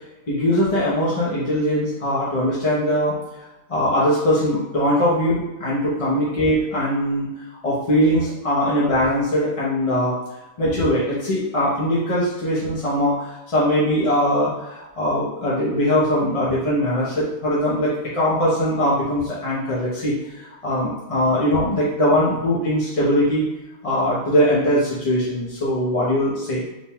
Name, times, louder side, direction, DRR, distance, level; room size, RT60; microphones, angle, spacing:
voice 1, 0.3-3.1 3.7-7.3 7.6-10.2 10.6-23.4 23.8-26.6, equal, 35° left, -8 dB, 0.7 m, -21 dB
5.1 x 2.2 x 3.5 m, 1.0 s
omnidirectional pair, 1.4 m